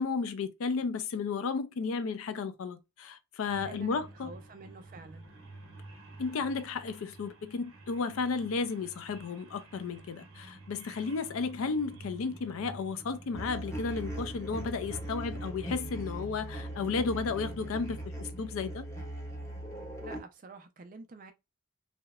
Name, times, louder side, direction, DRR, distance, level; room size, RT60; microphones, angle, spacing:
voice 1, 0.0-4.3 6.2-18.9, left 4 dB, 70° left, 0.4 m, -33 dB
sound 1, 3.4-18.1, right 2 dB, 65° right, 0.7 m, -50 dB
voice 2, 3.6-5.2 20.0-21.3, right 3 dB, 40° right, 0.4 m, -48 dB
sound 2, 13.3-20.2, right 1 dB, 15° left, 0.6 m, -40 dB
2.8 x 2.1 x 2.3 m
head